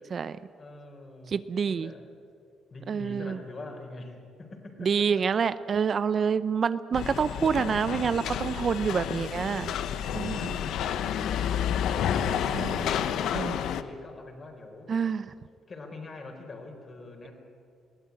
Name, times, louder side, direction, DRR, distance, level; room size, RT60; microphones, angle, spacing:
voice 1, 0.0-0.4 1.3-1.9 2.9-3.4 4.8-9.7 10.1-10.4 12.5-13.0 13.3-13.6 14.9-15.2, right 6 dB, 50° right, 15 dB, 0.6 m, -27 dB
voice 2, 0.6-2.1 2.7-5.3 10.1-10.8 11.1-11.5 11.9-15.0 15.7-17.3, left 2 dB, 40° left, 3 dB, 4.5 m, -44 dB
sound 1, 6.9-13.8, left 9 dB, 80° left, 0.9 m, -30 dB
21.0 x 15.5 x 9.7 m, 2.4 s
cardioid pair, 90°, 0 cm